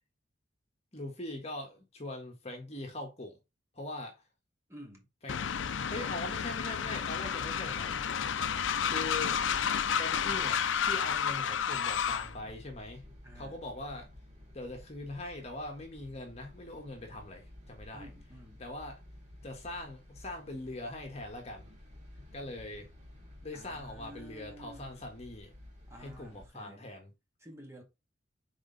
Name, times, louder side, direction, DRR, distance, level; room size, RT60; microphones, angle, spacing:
voice 1, 0.9-3.4 3.7-4.2 5.2-5.5 5.9-8.0 8.9-9.4 10.0-13.0 13.3-14.1 14.5-18.1 18.6-19.0 19.4-21.7 22.3-22.9 23.4-25.5 26.0-27.1, left 2 dB, 35° left, 1.5 m, -42 dB
voice 2, 4.7-5.1 13.2-13.6 17.9-18.7 23.5-25.1 25.9-26.9 27.4-27.8, equal, 15° right, 1.9 m, -51 dB
Train, 5.3-12.3, left 7 dB, 75° left, 0.5 m, -31 dB
sound 1, 11.9-26.5, left 1 dB, 35° right, 2.9 m, -53 dB
6.4 x 4.2 x 4.0 m
head